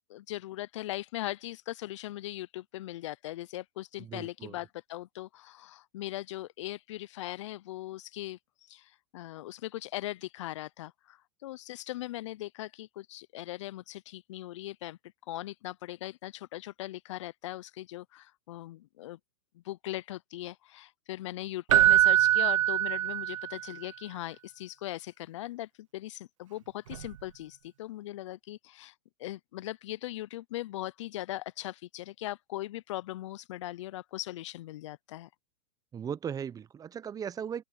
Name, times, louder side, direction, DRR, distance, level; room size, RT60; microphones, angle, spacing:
voice 1, 0.1-8.4 8.7-15.0 15.3-19.2 19.5-28.9 29.2-35.3, left 15 dB, 65° left, 0.8 m, -39 dB
voice 2, 4.0-4.6 35.9-37.6, right 8 dB, 20° right, 1.1 m, -37 dB
Keyboard (musical), 21.7-23.7 26.9-27.1, right 13 dB, 70° right, 0.6 m, -23 dB
open air
hypercardioid pair, 110°, 17 cm